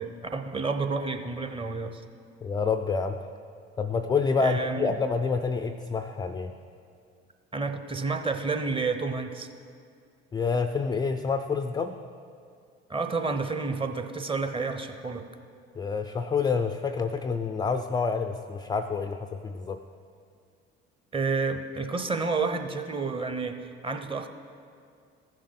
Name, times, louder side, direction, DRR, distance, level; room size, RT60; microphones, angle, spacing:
voice 1, 0.0-2.0 4.4-4.9 7.5-9.5 12.9-15.3 21.1-24.3, right 4 dB, 15° right, 6 dB, 0.8 m, -30 dB
voice 2, 2.4-3.3 3.8-6.5 10.3-12.0 15.7-19.8, left 5 dB, 15° left, 7 dB, 0.3 m, -28 dB
15.0 x 6.4 x 4.1 m, 2.3 s
hypercardioid pair, 60°, 32 cm